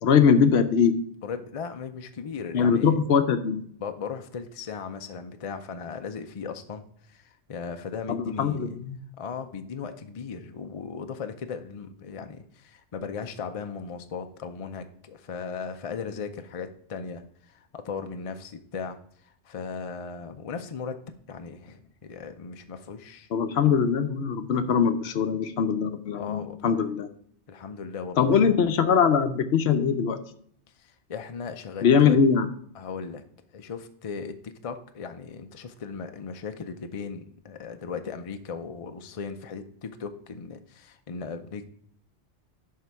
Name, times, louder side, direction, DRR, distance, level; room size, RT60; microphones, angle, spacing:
voice 1, 0.0-0.9 2.5-3.6 8.1-9.0 23.3-27.1 28.2-30.2 31.8-32.5, left 6 dB, 70° left, 9 dB, 0.9 m, -22 dB
voice 2, 1.2-2.9 3.8-8.8 9.2-19.0 19.2-21.0 21.3-23.3 26.2-26.8 27.5-28.6 30.8-32.2 32.7-33.2 33.5-41.6, left 5 dB, 40° left, 7 dB, 0.5 m, -37 dB
11.0 x 3.8 x 4.7 m, 0.63 s
omnidirectional pair, 1.2 m